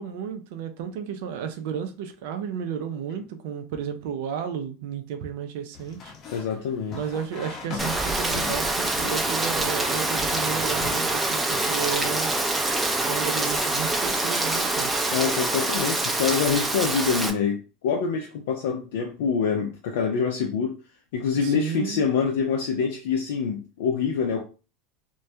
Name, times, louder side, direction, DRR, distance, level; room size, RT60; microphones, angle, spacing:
voice 1, 0.0-6.1 6.9-12.3 13.0-14.9 21.4-22.0, right 8 dB, 70° right, 0.4 m, -33 dB
sound 1, 5.7-11.6, left 5 dB, 45° left, 0.7 m, -40 dB
voice 2, 6.3-7.0 15.1-17.6 17.8-20.8 21.1-24.4, left 6 dB, 75° left, 0.4 m, -25 dB
Rain, 7.8-17.3, right 2 dB, 15° right, 0.5 m, -25 dB
2.2 x 2.1 x 2.7 m
hypercardioid pair, 100°, 0 cm